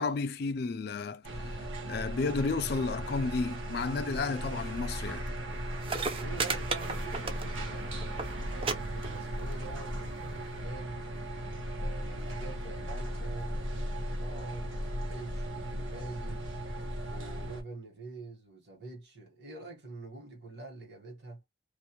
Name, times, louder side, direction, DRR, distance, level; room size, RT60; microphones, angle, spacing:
voice 1, 0.0-5.2, left 4 dB, 55° left, 0.4 m, -32 dB
sound 1, 1.2-17.6, right 1 dB, 85° right, 0.8 m, -37 dB
sound 2, 5.5-5.6 5.8-7.8 8.0-8.3 8.6-8.8 9.0-9.5 10.4-10.5, right 4 dB, 30° right, 0.4 m, -33 dB
voice 2, 6.1-8.0 8.5-11.0 11.8-16.5 17.1-21.4, right 3 dB, 60° right, 1.2 m, -46 dB
2.5 x 2.1 x 2.9 m
head